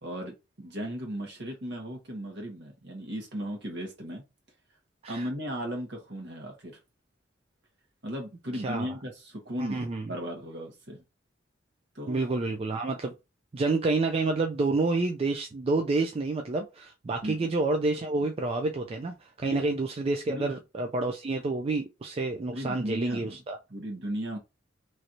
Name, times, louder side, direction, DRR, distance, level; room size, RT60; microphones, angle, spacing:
voice 1, 0.0-4.2 5.1-6.8 8.0-11.0 11.9-12.2 17.2-17.5 19.5-19.6 20.3-20.5 22.5-23.4 23.7-24.4, equal, 60° right, 1.3 m, -36 dB
voice 2, 8.5-8.9 9.6-10.1 12.1-13.1 13.5-23.6, right 3 dB, 30° right, 0.3 m, -29 dB
3.1 x 2.9 x 2.6 m
head